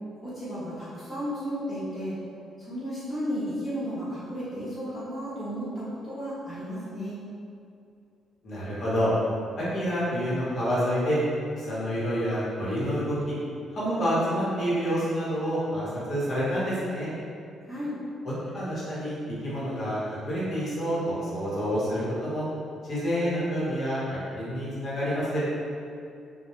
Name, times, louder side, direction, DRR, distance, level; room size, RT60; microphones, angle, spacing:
voice 1, 0.2-2.1 2.6-7.2 17.6-17.9, equal, 15° left, -14 dB, 0.8 m, -33 dB
voice 2, 8.4-9.1 9.6-11.2 11.6-13.4 13.7-17.1 18.5-19.2 19.4-22.4 22.9-25.4, equal, 50° left, -9 dB, 0.9 m, -28 dB
2.1 x 2.1 x 2.9 m, 2.5 s
cardioid pair, 90°, 0 cm